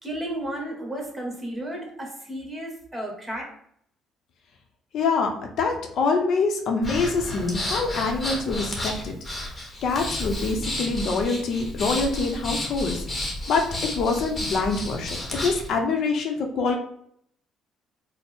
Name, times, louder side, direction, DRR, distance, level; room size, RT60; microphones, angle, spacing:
voice 1, 0.0-3.4, right 1 dB, 20° right, 0 dB, 1.3 m, -33 dB
voice 2, 4.9-9.1 9.8-13.0 13.5-16.8, left 4 dB, 65° left, 3 dB, 0.7 m, -25 dB
Breathing, 6.8-15.7, left 1 dB, 25° left, 1.2 m, -32 dB
4.1 x 2.1 x 3.5 m, 0.67 s
supercardioid pair, 75°, 0 cm